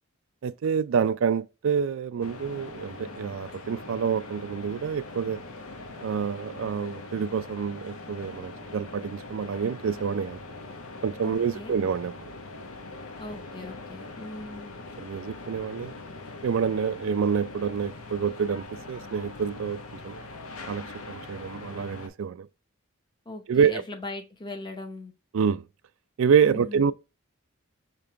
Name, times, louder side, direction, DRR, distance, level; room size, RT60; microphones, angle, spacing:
voice 1, 0.4-5.4 6.0-10.4 11.0-12.1 15.0-15.9 16.4-20.1 20.7-22.5 23.5-23.8 25.3-25.6 26.2-26.9, right 6 dB, 65° right, 0.3 m, -27 dB
sound 1, 2.2-22.1, left 2 dB, 80° left, 0.8 m, -42 dB
voice 2, 11.2-11.8 13.2-14.7 23.3-25.1 26.4-26.9, left 2 dB, 20° left, 0.7 m, -39 dB
5.1 x 2.9 x 3.4 m
head